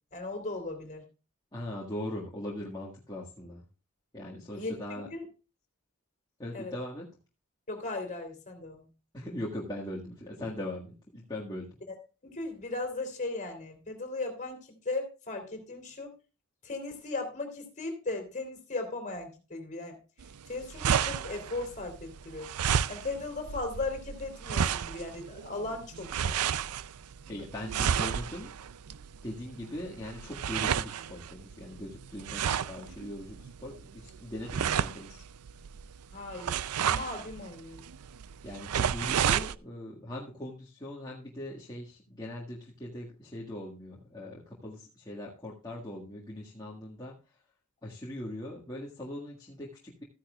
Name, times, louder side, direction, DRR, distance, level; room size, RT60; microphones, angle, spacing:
voice 1, 0.1-1.0 4.5-5.2 6.5-6.7 7.7-8.9 11.9-12.0 12.2-16.1 16.6-20.0 20.5-22.5 22.9-26.4 36.1-36.6 36.8-37.8, left 3 dB, 35° left, 5 dB, 3.2 m, -37 dB
voice 2, 1.5-3.6 4.1-5.1 6.4-7.1 9.1-11.7 27.3-28.6 29.2-35.2 38.4-47.1 47.8-50.0, left 1 dB, 20° left, -5 dB, 1.8 m, -40 dB
sound 1, 20.2-39.6, right 8 dB, 90° right, 0.5 m, -32 dB
14.5 x 10.0 x 2.4 m, 0.32 s
head